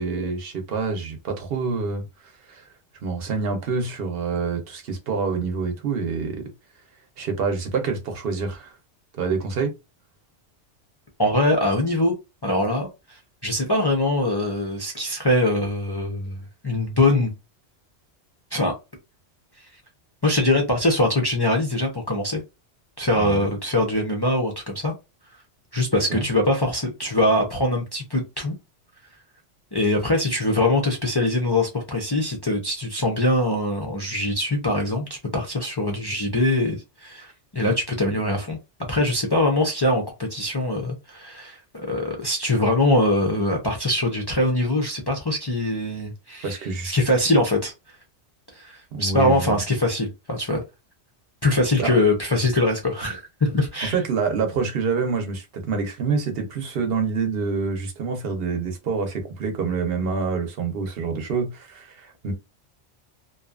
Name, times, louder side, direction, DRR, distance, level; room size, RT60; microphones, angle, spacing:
voice 1, 0.0-2.0 2.5-2.7 3.0-6.5 7.2-8.7 9.1-9.7 23.1-23.5 26.1-26.2 46.4-47.0 48.9-49.6 51.8-52.0 53.8-62.3, right 5 dB, 60° right, 0.9 m, -27 dB
voice 2, 11.2-12.2 12.4-17.3 18.5-18.7 20.2-22.4 23.0-24.9 25.7-28.5 29.7-38.6 38.9-40.0 40.3-46.6 46.8-47.7 48.5-50.6 51.4-54.0, left 1 dB, 35° left, 0.4 m, -23 dB
2.6 x 2.3 x 2.3 m
omnidirectional pair, 1.2 m